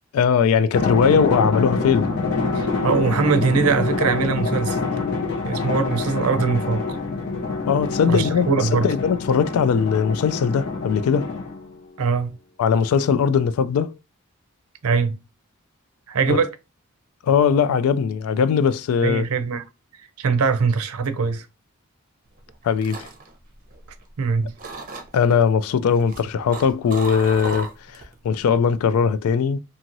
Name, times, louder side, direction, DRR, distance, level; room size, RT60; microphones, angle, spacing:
voice 1, 0.1-2.2 7.7-11.3 12.6-13.9 16.3-16.4 17.2-19.3 22.6-23.1 25.1-29.6, left 6 dB, 80° left, 0.3 m, -20 dB
Drum, 0.7-11.7, left 3 dB, 55° left, 1.1 m, -26 dB
voice 2, 2.5-4.9 5.4-7.0 8.1-8.9 12.0-12.4 14.8-15.2 16.1-16.5 19.0-19.6 20.2-21.5 24.2-24.5, right 5 dB, 90° right, 0.5 m, -22 dB
sound 1, 22.4-24.2 24.6-25.3 25.9-28.1 28.5-28.8, right 2 dB, 40° right, 0.7 m, -35 dB
2.9 x 2.7 x 2.5 m
head